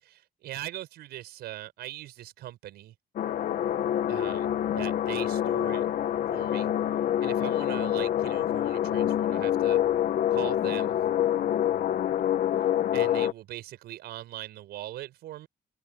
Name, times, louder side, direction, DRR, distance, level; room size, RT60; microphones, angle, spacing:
voice 1, 0.0-2.9 4.1-5.9 6.3-6.7 7.2-9.8 10.3-11.0 12.9-15.5, right 14 dB, 75° right, 5.2 m, -40 dB
sound 1, 3.2-13.3, left 11 dB, 55° left, 1.6 m, -26 dB
cardioid pair, 110°, 17 cm